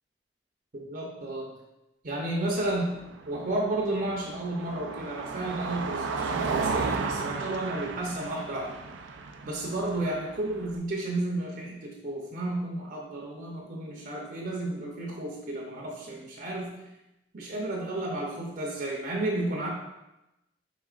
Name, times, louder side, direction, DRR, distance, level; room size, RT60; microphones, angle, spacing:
voice 1, 0.7-1.5 2.0-3.0 3.2-8.8 9.4-16.7 17.3-19.7, right 1 dB, 50° right, -2 dB, 0.7 m, -32 dB
Car passing by, 2.5-10.8, right 4 dB, 90° right, 0.4 m, -34 dB
4.9 x 3.7 x 2.4 m, 0.93 s
head